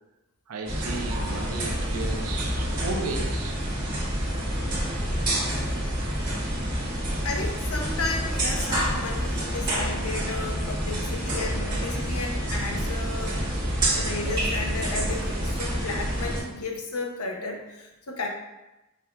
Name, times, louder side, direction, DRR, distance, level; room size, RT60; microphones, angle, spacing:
voice 1, 0.5-3.6 13.8-13.9, right 3 dB, 75° right, 4 dB, 0.6 m, -34 dB
sound 1, 0.6-16.4, right 1 dB, 20° right, 1.5 m, -28 dB
voice 2, 7.2-13.4 13.9-18.3, left 3 dB, 75° left, 1 dB, 0.7 m, -33 dB
5.9 x 3.5 x 2.2 m, 0.99 s
head